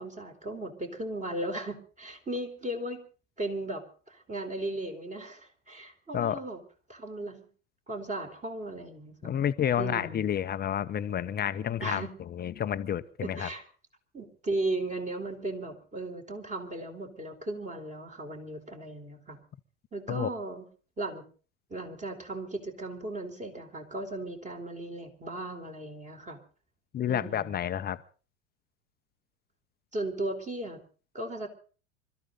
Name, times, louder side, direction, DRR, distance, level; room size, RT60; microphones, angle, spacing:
voice 1, 0.0-3.0 3.4-6.6 6.9-7.5 7.9-9.3 9.8-10.2 11.8-12.1 13.2-13.6 14.1-19.4 19.9-20.7 21.0-21.2 21.7-26.4 27.1-27.5 29.9-30.8 31.1-31.5, right 2 dB, 20° right, 4 dB, 4.4 m, -36 dB
voice 2, 9.2-12.0 12.4-13.5 20.1-20.3 26.9-28.0, left 9 dB, 25° left, 11 dB, 0.8 m, -30 dB
25.5 x 13.5 x 4.0 m, 0.39 s
hypercardioid pair, 85°, 37 cm